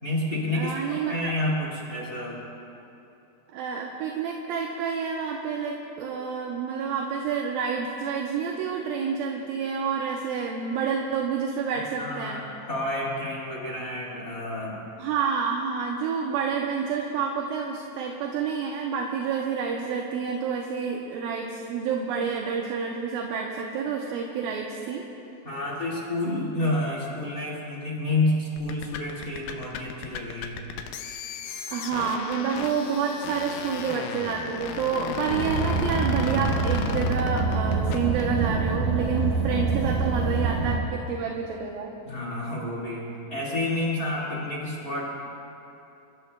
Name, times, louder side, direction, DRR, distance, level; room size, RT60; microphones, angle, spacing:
voice 1, 0.0-2.4 12.0-12.4 12.7-14.8 25.4-30.7 42.0-45.1, left 2 dB, 30° left, -4 dB, 1.7 m, -29 dB
voice 2, 0.5-1.3 3.5-12.4 15.0-25.1 31.7-41.9, right 6 dB, 75° right, 0 dB, 2.4 m, -29 dB
sound 1, 28.6-38.3, left 7 dB, 80° left, 2.3 m, -35 dB
Car, 35.3-40.8, right 3 dB, 60° right, 1.9 m, -26 dB
27.5 x 15.0 x 2.3 m, 2.9 s
omnidirectional pair, 4.5 m